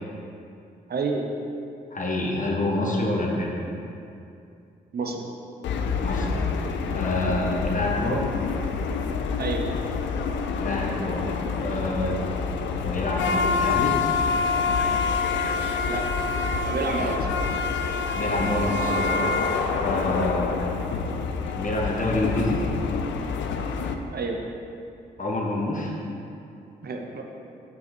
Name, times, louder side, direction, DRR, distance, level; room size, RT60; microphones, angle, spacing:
voice 1, 0.9-1.3 4.9-5.3 9.4-9.7 15.9-16.0 16.6-17.5 24.1-24.4 26.8-27.2, right 4 dB, 55° right, 2 dB, 0.9 m, -29 dB
voice 2, 1.9-3.5 6.0-6.4 6.9-8.2 10.6-11.2 11.6-12.2 12.8-13.9 17.0-17.1 18.1-19.2 19.8-20.6 21.6-22.6 25.2-25.9, left 1 dB, 40° left, -1 dB, 1.4 m, -27 dB
sound 1, 5.6-23.9, left 5 dB, 75° left, 0.5 m, -27 dB
5.8 x 5.7 x 4.5 m, 2.6 s
hypercardioid pair, 40°, 19 cm